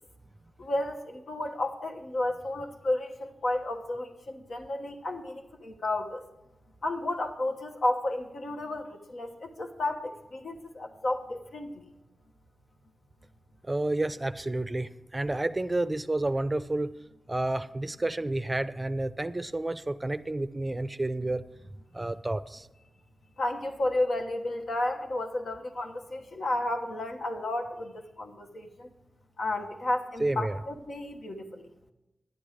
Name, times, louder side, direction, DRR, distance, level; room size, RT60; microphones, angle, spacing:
voice 1, 0.6-6.2 6.8-11.9 23.4-28.9 29.4-31.7, left 1 dB, 75° left, 3 dB, 1.2 m, -32 dB
voice 2, 13.6-16.9 17.3-21.4 21.9-22.7 30.2-30.6, right 2 dB, 25° right, 13 dB, 0.5 m, -30 dB
11.0 x 9.7 x 5.0 m, 0.97 s
cardioid pair, 55°, 0 cm